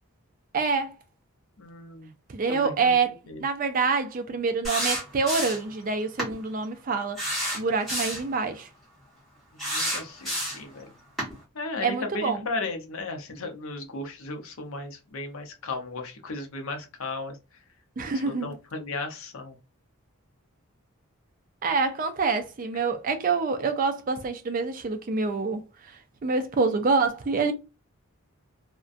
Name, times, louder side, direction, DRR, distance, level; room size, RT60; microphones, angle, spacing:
voice 1, 0.5-1.0 2.3-7.2 7.5-8.7 11.8-12.4 18.0-18.5 21.6-27.5, right 4 dB, 40° right, 0.3 m, -26 dB
voice 2, 1.6-2.1 2.5-2.9 3.3-3.4 9.6-10.9 11.5-17.4 18.1-19.6, left 3 dB, 65° left, 0.6 m, -35 dB
sound 1, 4.6-5.7 6.2-6.3 7.2-8.3 9.6-10.7 11.2-11.3, equal, ahead, 1.1 m, -29 dB
2.4 x 2.1 x 2.4 m
head